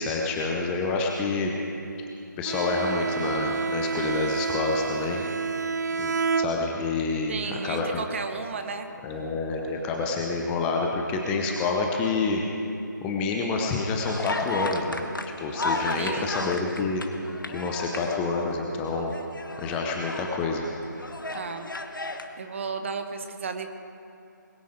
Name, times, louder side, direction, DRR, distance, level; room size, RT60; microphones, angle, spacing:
voice 1, 0.0-1.5 2.0-2.1 2.4-5.2 6.0-8.0 9.0-12.4 13.0-15.0 15.4-17.0 17.5-19.1 19.6-20.7, left 4 dB, 10° left, 0 dB, 0.7 m, -28 dB
Bowed string instrument, 2.5-7.1, right 5 dB, 60° right, 0.5 m, -29 dB
voice 2, 7.3-8.9 16.0-16.3 21.3-21.7 22.4-23.7, right 5 dB, 40° right, 7 dB, 1.1 m, -33 dB
sound 1, 14.0-18.6 19.0-20.3 20.8-22.3, left 2 dB, 85° left, 1.2 m, -34 dB
21.0 x 9.2 x 5.1 m, 2.8 s
figure-of-eight pair, 155°, 11 cm